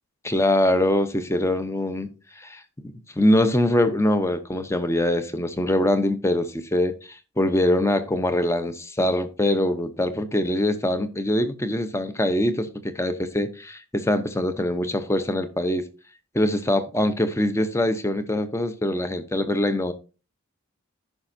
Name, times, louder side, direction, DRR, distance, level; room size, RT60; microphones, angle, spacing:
voice 1, 0.2-2.1 2.4-15.9 16.3-19.9, left 1 dB, 15° left, 0.7 m, -23 dB
14.5 x 5.8 x 2.6 m
head